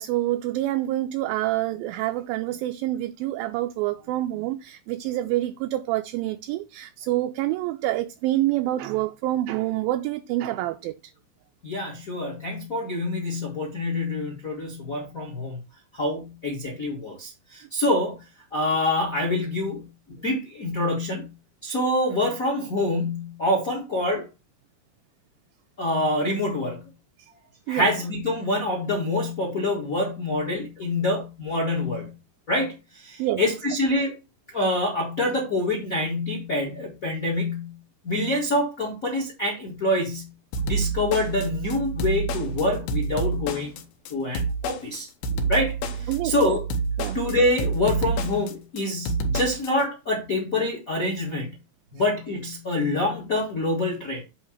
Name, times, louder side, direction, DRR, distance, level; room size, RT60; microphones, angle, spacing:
voice 1, 0.0-10.9 27.7-27.9 33.2-33.6 45.3-45.4 46.1-46.6 47.0-47.2, right 15 dB, 80° right, 2.2 m, -27 dB
voice 2, 11.6-15.6 15.9-18.2 18.5-21.3 21.6-24.2 25.8-26.8 27.7-32.1 32.5-34.1 34.5-37.8 38.0-40.3 40.6-43.8 44.1-45.1 45.5-46.6 47.1-51.5 51.9-54.2, left 1 dB, 55° left, 0.9 m, -26 dB
sound 1, 40.5-49.7, right 3 dB, 90° left, 2.7 m, -28 dB
8.2 x 2.8 x 5.7 m
omnidirectional pair, 4.2 m